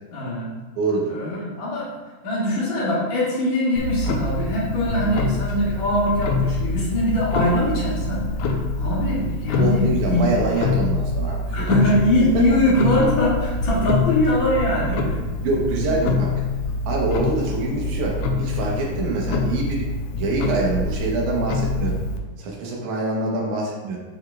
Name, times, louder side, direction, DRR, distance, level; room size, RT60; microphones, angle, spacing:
voice 1, 0.1-0.5 1.1-1.9 2.2-10.3 11.5-15.2, left 1 dB, 50° left, -8 dB, 3.0 m, -22 dB
voice 2, 0.8-1.1 4.8-5.1 9.6-11.7 11.9-12.0 15.4-16.3 16.8-19.8 20.2-21.9 22.4-24.0, right 2 dB, 75° right, -2 dB, 1.8 m, -25 dB
Clock, 3.8-22.2, left 3 dB, 80° left, 2.2 m, -25 dB
8.0 x 6.3 x 2.4 m, 1.3 s
omnidirectional pair, 4.9 m